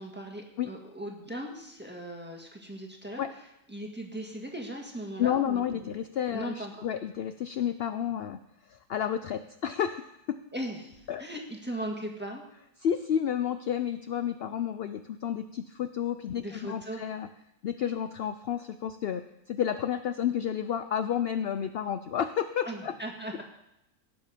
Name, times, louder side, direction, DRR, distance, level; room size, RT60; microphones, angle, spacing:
voice 1, 0.0-3.2 3.7-6.0 6.3-6.7 10.5-12.4 16.3-17.0 22.6-23.4, right 1 dB, 5° right, 1 dB, 1.7 m, -38 dB
voice 2, 5.2-8.4 8.7-10.4 11.1-11.2 12.8-17.3 17.6-22.9, left 9 dB, 65° left, 10 dB, 0.6 m, -31 dB
17.5 x 7.1 x 5.1 m, 0.85 s
omnidirectional pair, 1.6 m